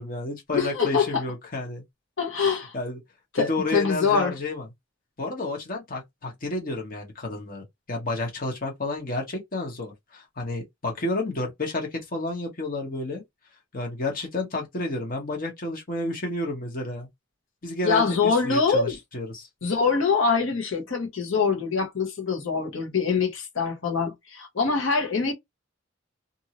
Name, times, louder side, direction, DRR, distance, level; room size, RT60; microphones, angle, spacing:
voice 1, 0.0-1.8 2.7-3.0 3.4-4.7 5.2-13.2 13.7-17.1 17.6-19.5, left 2 dB, 45° left, 1.1 m, -31 dB
voice 2, 0.5-1.2 2.2-2.7 3.3-4.3 17.8-18.9 19.6-25.3, left 5 dB, 90° left, 1.1 m, -24 dB
2.7 x 2.6 x 2.9 m
head